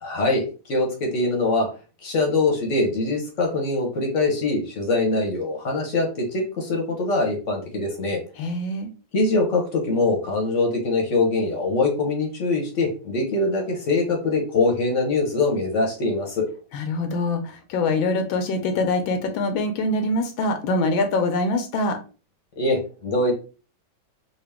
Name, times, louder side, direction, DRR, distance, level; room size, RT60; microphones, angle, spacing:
voice 1, 0.0-0.4 0.7-1.7 2.0-8.2 9.1-16.5 22.6-23.3, left 2 dB, 50° left, 1 dB, 1.0 m, -23 dB
voice 2, 8.4-8.9 16.7-22.0, left 2 dB, 85° left, 6 dB, 1.4 m, -24 dB
3.8 x 2.4 x 3.4 m, 0.34 s
omnidirectional pair, 2.1 m